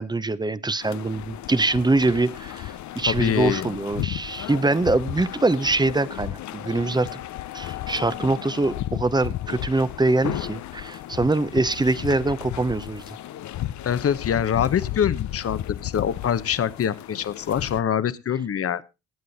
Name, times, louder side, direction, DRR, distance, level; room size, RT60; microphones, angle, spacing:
voice 1, 0.0-7.2 7.5-13.2, right 2 dB, 15° right, 17 dB, 0.8 m, -24 dB
sound 1, 0.8-17.8, left 13 dB, 70° left, 0.8 m, -34 dB
voice 2, 3.1-3.7 13.8-18.8, left 8 dB, 50° left, 15 dB, 1.1 m, -24 dB
18.5 x 7.7 x 4.1 m, 0.28 s
cardioid pair, 90°, 30 cm